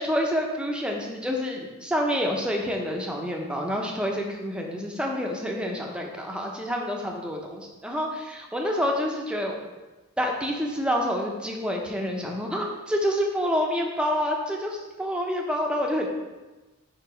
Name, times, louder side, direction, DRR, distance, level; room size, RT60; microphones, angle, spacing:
voice 1, 0.0-9.6 10.2-16.1, equal, 5° right, 0 dB, 0.6 m, -28 dB
5.0 x 4.7 x 5.0 m, 1.2 s
head